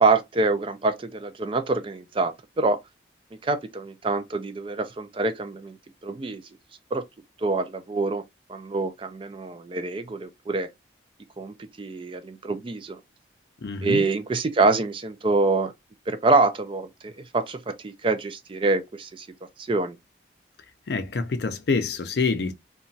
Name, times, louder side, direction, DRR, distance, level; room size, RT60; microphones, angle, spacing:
voice 1, 0.0-2.8 3.4-5.8 6.0-6.4 6.9-7.0 7.4-8.2 8.5-10.7 11.4-13.0 13.8-15.7 16.1-19.3 19.6-20.0, right 3 dB, 30° right, 0.3 m, -25 dB
voice 2, 13.6-14.0 20.9-22.5, left 4 dB, 60° left, 0.5 m, -26 dB
2.9 x 2.2 x 2.6 m
head